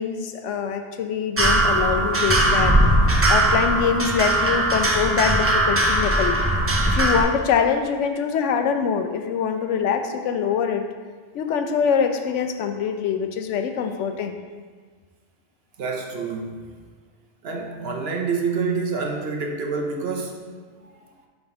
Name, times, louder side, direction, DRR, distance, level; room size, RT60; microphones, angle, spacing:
voice 1, 0.0-2.8 3.3-6.4 6.9-10.9 11.3-14.4, left 7 dB, 85° left, 6 dB, 0.9 m, -24 dB
sound 1, 1.4-7.2, right 1 dB, 25° right, 0.3 m, -19 dB
voice 2, 15.8-16.8 17.4-21.1, right 4 dB, 60° right, 1 dB, 0.9 m, -28 dB
5.4 x 3.5 x 5.6 m, 1.5 s
omnidirectional pair, 1.2 m